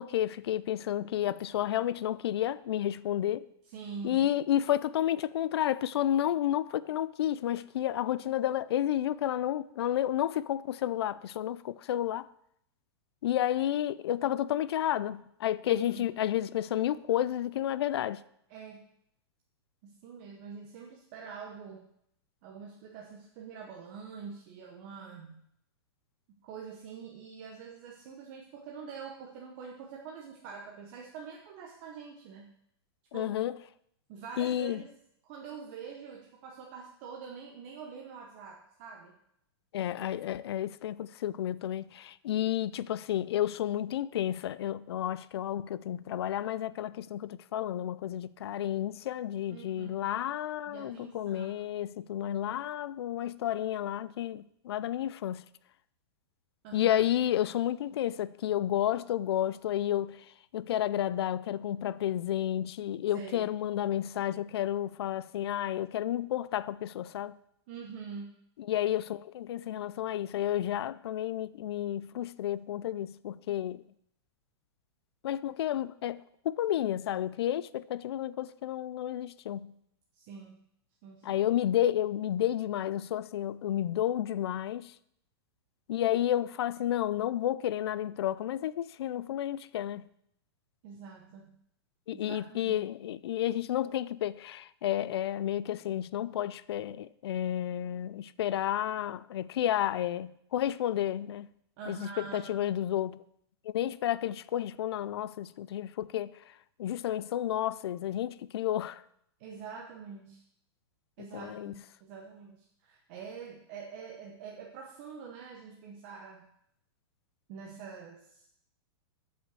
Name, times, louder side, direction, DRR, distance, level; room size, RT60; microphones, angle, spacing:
voice 1, 0.0-3.5 4.0-12.3 13.2-18.2 33.1-33.6 34.4-34.8 39.7-55.4 56.7-60.3 60.5-67.4 68.7-73.8 75.2-79.7 81.2-84.9 85.9-90.0 92.1-101.5 101.9-103.2 103.7-106.3 106.8-109.0 111.3-111.7, left 12 dB, 65° left, 0.4 m, -31 dB
voice 2, 3.6-4.2 15.6-16.1 18.5-18.8 19.8-21.8 22.4-25.4 26.4-32.5 33.1-33.3 34.1-34.9 35.2-39.2 49.5-50.1 50.7-51.6 56.6-57.0 63.1-63.5 67.7-68.3 80.1-80.6 81.0-81.4 90.8-91.5 92.1-92.8 101.8-102.5 109.4-110.4 111.2-116.4 117.5-118.5, right 6 dB, 30° right, 1.0 m, -45 dB
7.6 x 5.5 x 7.6 m
supercardioid pair, 175°, 14 cm